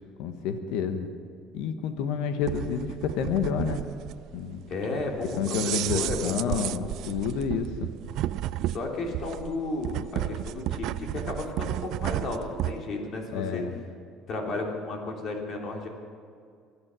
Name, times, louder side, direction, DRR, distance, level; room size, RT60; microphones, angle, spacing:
voice 1, 0.2-1.1 1.5-3.8 4.3-4.6 5.4-7.9 13.3-13.7, left 7 dB, 80° left, 8 dB, 1.3 m, -29 dB
sound 1, 2.4-12.8, right 14 dB, 70° right, 0.3 m, -33 dB
voice 2, 4.7-6.9 8.7-13.6 14.3-15.9, left 2 dB, 50° left, 1 dB, 3.1 m, -33 dB
24.0 x 8.7 x 6.3 m, 2.3 s
cardioid pair, 105°, 0 cm